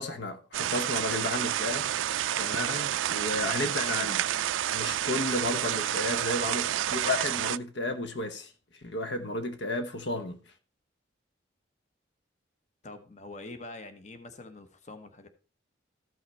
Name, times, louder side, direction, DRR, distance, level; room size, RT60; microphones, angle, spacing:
voice 1, 0.0-1.9 2.4-4.2 4.7-10.4, left 2 dB, 65° left, 1.0 m, -33 dB
sound 1, 0.5-7.6, right 11 dB, 85° right, 0.4 m, -29 dB
voice 2, 12.8-15.3, left 2 dB, 40° left, 1.0 m, -45 dB
14.0 x 5.7 x 4.2 m
head